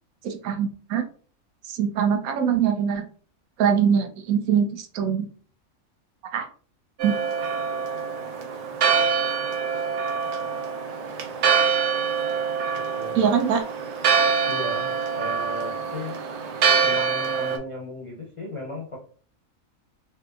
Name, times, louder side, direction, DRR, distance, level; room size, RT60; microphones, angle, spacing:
voice 1, 0.2-1.0 1.7-3.0 3.6-5.3 6.3-6.5 7.0-7.1 13.1-13.6, right 7 dB, 85° right, 5 dB, 1.1 m, -23 dB
Church bell, 7.0-17.6, right 6 dB, 65° right, 0.8 m, -25 dB
voice 2, 12.9-13.4 14.5-16.2 16.8-19.0, equal, 55° left, -3 dB, 0.3 m, -35 dB
3.4 x 2.8 x 2.3 m, 0.44 s
omnidirectional pair, 1.5 m